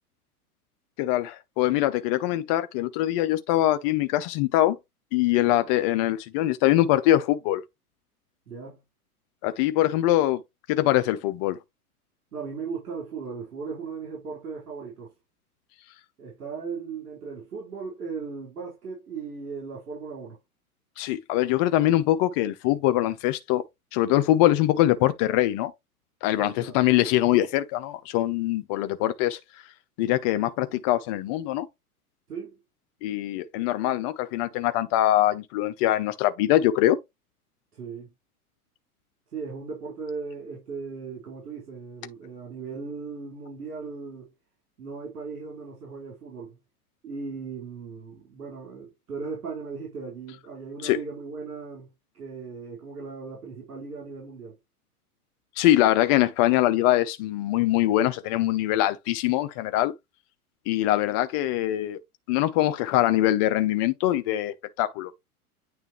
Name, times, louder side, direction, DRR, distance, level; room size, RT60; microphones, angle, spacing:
voice 1, 1.0-4.8 5.1-7.6 9.4-10.4 10.7-11.6 21.0-23.6 23.9-25.7 26.2-29.4 30.0-31.7 33.0-37.0 50.8-51.0 55.6-59.9 60.7-62.0 62.3-65.1, left 14 dB, 25° left, 0.4 m, -23 dB
voice 2, 8.5-8.8 12.3-15.1 16.2-20.4 26.4-26.8 32.3-32.6 37.7-38.1 39.3-44.3 44.8-46.6 47.0-54.5, right 5 dB, 70° right, 4.3 m, -37 dB
9.3 x 3.3 x 3.0 m
hypercardioid pair, 105°, 45 cm